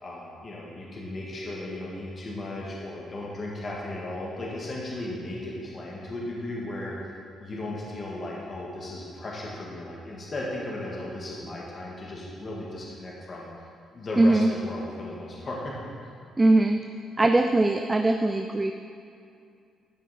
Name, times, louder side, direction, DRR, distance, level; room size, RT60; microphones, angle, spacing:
voice 1, 0.0-7.0 7.4-13.5 13.9-15.8, left 1 dB, 40° left, -4 dB, 1.7 m, -36 dB
voice 2, 14.2-14.5 16.4-16.8 17.2-18.7, right 2 dB, 20° right, 5 dB, 0.4 m, -21 dB
12.5 x 5.7 x 4.2 m, 2.4 s
cardioid pair, 90°, 0 cm